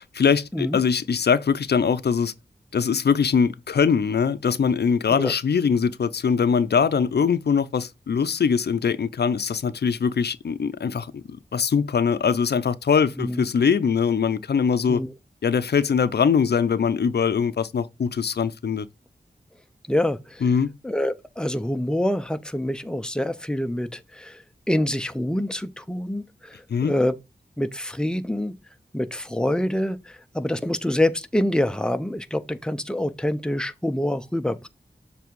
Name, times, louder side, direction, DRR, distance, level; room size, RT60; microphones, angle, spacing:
voice 1, 0.1-2.3 2.7-15.0 15.4-18.9 20.4-20.7 26.7-26.9, left 6 dB, 70° left, 0.5 m, -22 dB
voice 2, 19.9-20.4 20.8-27.2 27.6-28.5 28.9-34.7, left 1 dB, 5° left, 0.6 m, -26 dB
7.2 x 3.4 x 4.6 m
wide cardioid pair, 65°, 17 cm